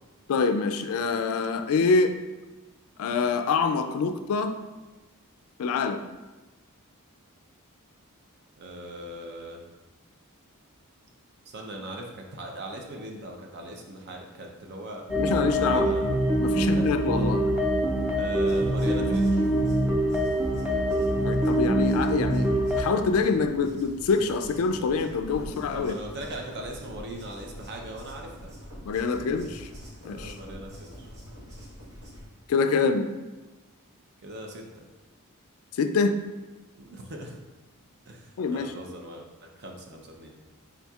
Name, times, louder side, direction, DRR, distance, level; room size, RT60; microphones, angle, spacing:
voice 1, 0.3-2.1 3.0-4.5 5.6-6.0 15.1-17.4 21.2-22.5 22.8-26.0 28.8-29.7 30.0-30.4 32.5-33.1 35.7-36.1 38.4-38.7, left 4 dB, 70° left, 8 dB, 0.3 m, -25 dB
voice 2, 8.6-9.6 11.5-15.0 15.5-16.0 16.5-16.8 17.1-17.3 18.2-19.5 25.7-28.5 30.1-31.1 34.2-34.9 36.8-37.4 38.1-40.3, right 1 dB, 50° right, 1 dB, 0.6 m, -39 dB
sound 1, 15.1-22.8, right 1 dB, 5° right, 0.5 m, -24 dB
sound 2, 18.1-32.2, equal, 85° right, 1.4 m, -44 dB
4.2 x 3.7 x 2.3 m, 1.1 s
head